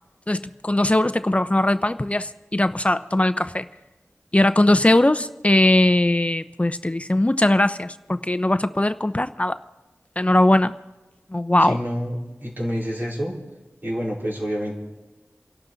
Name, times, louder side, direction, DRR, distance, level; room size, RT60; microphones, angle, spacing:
voice 1, 0.3-3.7 4.3-9.6 10.2-10.7 11.3-11.8, left 1 dB, 25° left, 11 dB, 0.6 m, -20 dB
voice 2, 11.7-13.3 13.8-14.7, equal, 45° right, -4 dB, 4.5 m, -28 dB
28.5 x 12.0 x 4.0 m, 1.1 s
wide cardioid pair, 60°, 5 cm